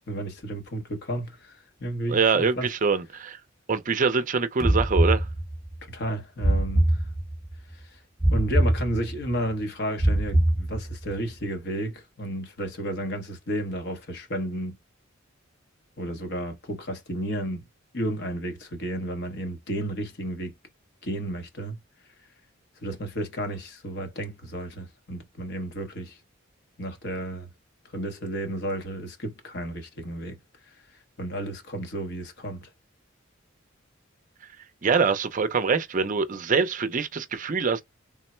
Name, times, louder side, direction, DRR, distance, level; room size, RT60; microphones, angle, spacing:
voice 1, 0.0-2.7 5.8-7.1 7.7-8.0 8.3-14.8 16.0-17.6 17.9-20.5 21.0-21.8 22.8-26.2 26.8-27.5 27.9-30.4 31.2-32.7, right 1 dB, 55° left, 1.0 m, -32 dB
voice 2, 2.1-3.4 3.7-5.2 34.8-37.8, right 5 dB, 40° right, 0.5 m, -24 dB
sound 1, 4.6-5.8 6.4-7.6 8.2-9.4 10.0-11.2, right 1 dB, ahead, 0.7 m, -23 dB
3.6 x 2.1 x 4.3 m
head